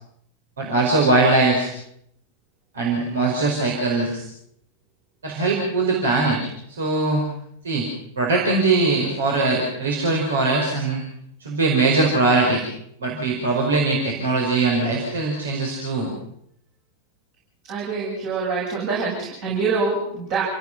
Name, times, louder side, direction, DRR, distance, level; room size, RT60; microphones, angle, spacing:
voice 1, 0.6-1.7 2.7-4.2 5.2-7.3 7.6-7.9 8.2-11.0 11.4-12.6 13.0-16.1, right 3 dB, 70° right, -1 dB, 4.8 m, -21 dB
voice 2, 17.7-20.4, right 4 dB, 45° right, -5 dB, 7.8 m, -25 dB
28.5 x 17.5 x 6.0 m, 0.72 s
figure-of-eight pair, 90°, 0 cm